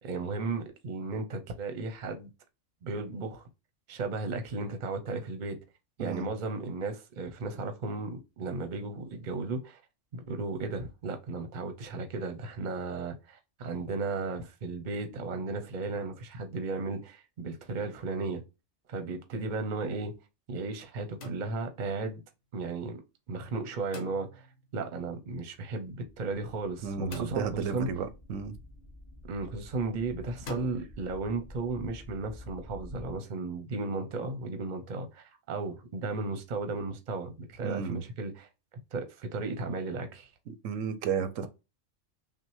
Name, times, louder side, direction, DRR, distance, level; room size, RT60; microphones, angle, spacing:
voice 1, 0.0-2.3 2.8-3.4 3.9-5.6 6.0-9.8 10.1-18.4 18.9-20.1 20.5-22.2 22.5-23.0 23.3-24.5 24.7-27.9 29.3-38.5 38.9-40.3, right 3 dB, 45° right, 0.7 m, -35 dB
sound 1, 21.2-22.0 23.9-24.7 27.1-28.0 30.5-30.8, equal, 70° left, 1.3 m, -43 dB
sound 2, 26.1-33.1, left 1 dB, 30° left, 1.1 m, -49 dB
voice 2, 26.8-28.6 37.6-38.0 40.5-41.5, right 6 dB, 90° right, 1.0 m, -33 dB
5.8 x 2.2 x 3.0 m
omnidirectional pair, 1.3 m